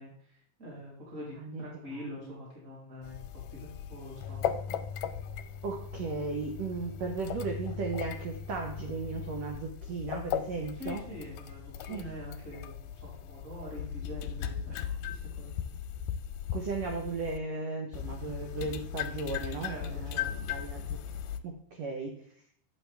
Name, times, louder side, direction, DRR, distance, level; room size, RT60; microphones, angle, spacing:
voice 1, 0.0-4.5 10.7-15.6 18.1-18.3 19.6-20.3, left 1 dB, 20° right, -5 dB, 3.6 m, -45 dB
voice 2, 1.4-2.3 5.6-11.0 11.9-12.1 16.5-20.8 21.4-22.2, right 4 dB, 70° right, 3 dB, 1.7 m, -36 dB
sound 1, 3.0-17.4 17.9-21.4, left 9 dB, 80° left, 2.1 m, -38 dB
9.6 x 6.9 x 3.4 m, 0.63 s
omnidirectional pair, 3.9 m